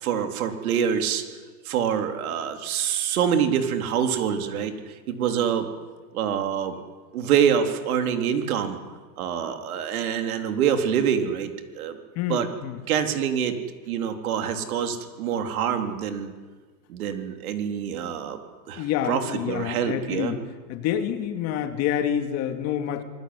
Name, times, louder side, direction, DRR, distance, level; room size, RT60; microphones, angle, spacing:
voice 1, 0.0-1.2 1.6-5.7 6.1-6.7 7.1-8.8 9.2-11.5 11.8-12.0 12.3-12.5 12.9-13.5 13.9-16.3 16.9-18.4 18.7-20.3, right 8 dB, 65° right, 6 dB, 3.9 m, -25 dB
voice 2, 12.2-12.8 18.7-20.4 20.7-23.0, left 10 dB, 35° left, 7 dB, 2.5 m, -27 dB
26.0 x 20.0 x 9.8 m, 1.4 s
supercardioid pair, 150°, 46 cm